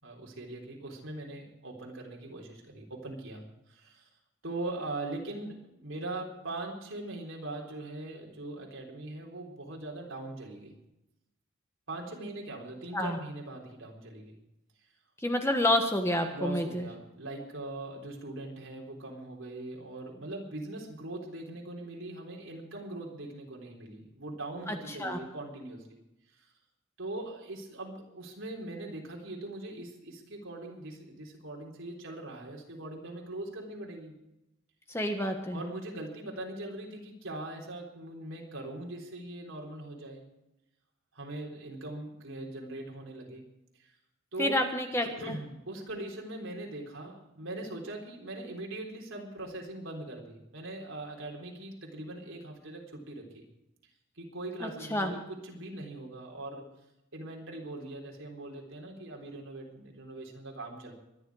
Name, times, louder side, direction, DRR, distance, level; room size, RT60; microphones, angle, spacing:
voice 1, 0.0-4.1 4.4-10.7 11.9-14.4 16.3-26.0 26.4-26.5 27.0-34.1 35.5-40.2 41.1-43.5 43.8-43.9 44.3-44.7 45.0-53.5 54.2-56.7 57.1-60.9, right 2 dB, 65° right, -1 dB, 3.7 m, -41 dB
voice 2, 15.2-16.9 24.7-25.2 34.9-35.6 44.4-45.4 54.6-55.1, left 1 dB, 10° left, 4 dB, 1.3 m, -29 dB
23.5 x 10.5 x 4.8 m, 0.90 s
head